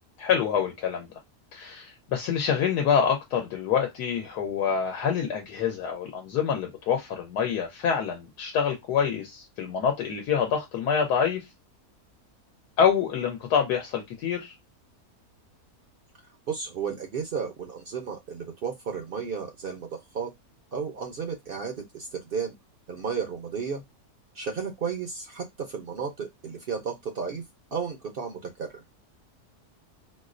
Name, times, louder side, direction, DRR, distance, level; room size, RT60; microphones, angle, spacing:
voice 1, 0.2-1.1 1.5-11.4 12.8-14.5, left 7 dB, 90° left, 1.3 m, -26 dB
voice 2, 16.5-20.3 20.7-22.5 22.9-23.8 24.3-27.4 27.7-28.8, right 6 dB, 60° right, 0.5 m, -33 dB
4.2 x 2.0 x 2.5 m
omnidirectional pair, 1.7 m